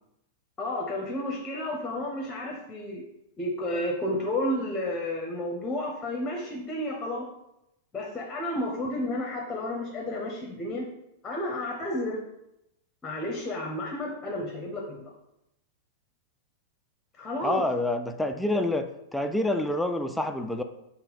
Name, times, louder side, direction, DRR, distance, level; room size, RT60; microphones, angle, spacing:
voice 1, 0.6-3.0 3.4-7.3 7.9-10.8 11.2-12.2 13.0-15.1 17.2-17.6, left 1 dB, 20° left, 0 dB, 0.8 m, -31 dB
voice 2, 17.4-20.6, left 1 dB, 5° left, 6 dB, 0.3 m, -27 dB
3.9 x 2.1 x 3.9 m, 0.84 s
figure-of-eight pair, 100°, 0 cm